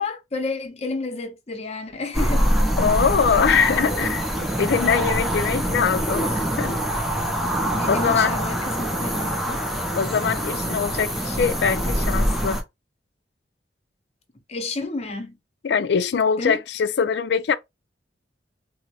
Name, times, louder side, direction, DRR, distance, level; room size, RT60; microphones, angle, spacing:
voice 1, 0.0-2.5 7.7-9.6 14.5-15.4 16.4-16.6, left 3 dB, 35° left, 0.7 m, -30 dB
sound 1, 2.1-12.6, equal, ahead, 0.6 m, -24 dB
voice 2, 2.8-4.2 4.6-6.8 7.9-8.4 10.0-12.6 15.6-17.5, left 6 dB, 65° left, 0.4 m, -22 dB
3.8 x 2.0 x 3.0 m
head